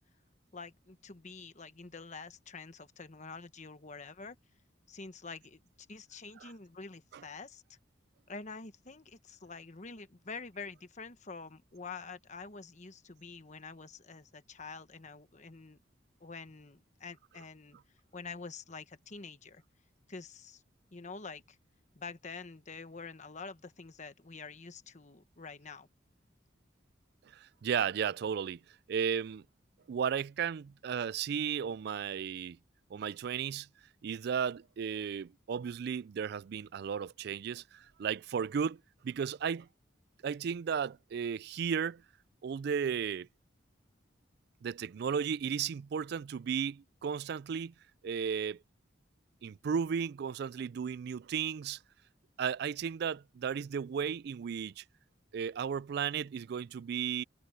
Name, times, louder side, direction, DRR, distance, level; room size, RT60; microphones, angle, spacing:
voice 1, 0.5-4.4 4.9-5.6 5.9-7.6 8.3-15.8 16.2-17.8 18.1-19.6 20.1-20.6 20.9-21.6 21.9-25.9, left 4 dB, 40° left, 1.2 m, -47 dB
voice 2, 27.3-28.6 28.9-29.4 29.9-32.6 32.9-33.7 34.0-39.7 40.2-42.0 42.4-43.3 44.6-47.7 48.0-48.6 49.4-51.8 52.4-54.8 55.3-57.2, right 7 dB, 60° right, 0.3 m, -34 dB
head